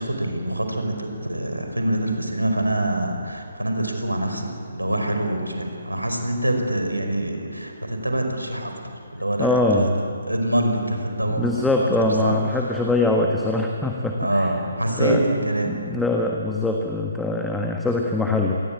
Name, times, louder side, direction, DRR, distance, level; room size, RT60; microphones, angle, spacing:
voice 1, 0.0-9.9 10.3-11.7 12.0-12.8 14.2-15.7, right 1 dB, 85° right, 4 dB, 5.1 m, -25 dB
voice 2, 9.4-9.9 11.4-14.5 15.0-15.2 15.6-18.6, left 2 dB, 5° left, 2 dB, 1.5 m, -22 dB
27.5 x 20.5 x 8.6 m, 2.6 s
figure-of-eight pair, 140°, 0 cm